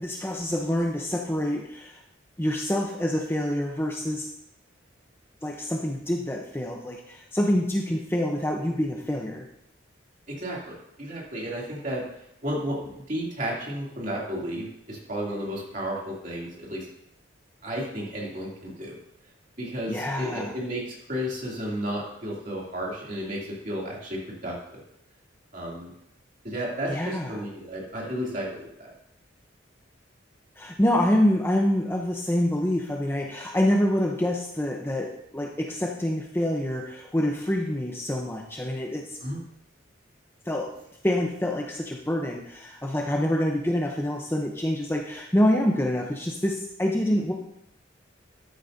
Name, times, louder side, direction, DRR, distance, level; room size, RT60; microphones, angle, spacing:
voice 1, 0.0-2.0 2.4-4.3 5.4-9.4 19.9-20.5 26.9-27.4 30.6-39.2 40.5-40.7 41.0-47.3, left 1 dB, 10° left, 0 dB, 0.7 m, -26 dB
voice 2, 10.3-12.0 12.4-16.8 17.6-19.0 19.6-24.5 25.5-25.9 26.4-28.9 39.2-39.4, equal, 40° right, -4 dB, 2.8 m, -33 dB
13.0 x 8.7 x 2.7 m, 0.78 s
head